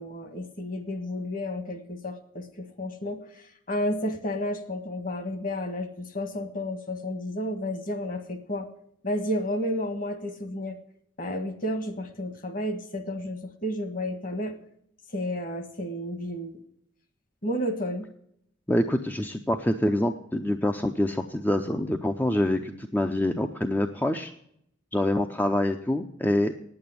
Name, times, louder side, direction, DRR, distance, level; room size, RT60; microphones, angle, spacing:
voice 1, 0.0-3.2 3.7-8.7 9.0-10.8 11.2-14.5 15.1-16.6 17.4-18.0, left 1 dB, 45° left, 8 dB, 1.6 m, -31 dB
voice 2, 18.7-24.3 24.9-26.5, left 1 dB, 10° left, 6 dB, 0.5 m, -26 dB
9.3 x 8.8 x 9.4 m, 0.71 s
head